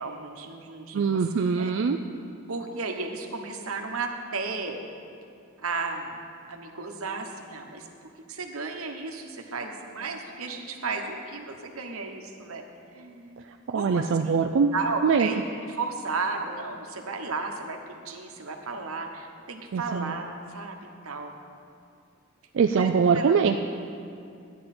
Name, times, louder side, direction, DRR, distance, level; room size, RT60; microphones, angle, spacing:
voice 1, 0.0-1.2 1.5-1.7 2.5-4.8 5.6-6.2 6.5-7.9 8.3-12.6 12.9-13.5 13.7-14.4 14.7-15.4 15.7-21.3 22.7-22.9 23.1-23.4, right 4 dB, 85° right, 3 dB, 1.2 m, -34 dB
voice 2, 0.9-2.0 13.5-14.8 15.0-15.3 19.7-20.1 22.5-23.6, right 5 dB, 60° right, 4 dB, 0.4 m, -23 dB
14.0 x 10.0 x 4.3 m, 2.5 s
head